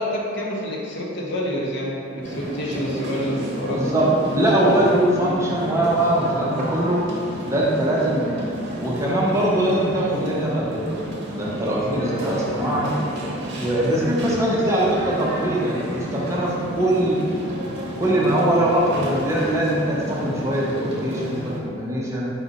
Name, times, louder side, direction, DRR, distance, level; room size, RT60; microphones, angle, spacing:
voice 1, 0.0-3.9, equal, 65° left, -3 dB, 0.7 m, -27 dB
sound 1, 2.2-21.6, equal, 60° right, 0.8 m, -31 dB
voice 2, 3.6-7.0 7.4-11.0 11.3-13.0 13.5-17.2 18.0-22.3, right 1 dB, 15° right, -5 dB, 0.7 m, -22 dB
5.0 x 2.5 x 4.0 m, 2.5 s
head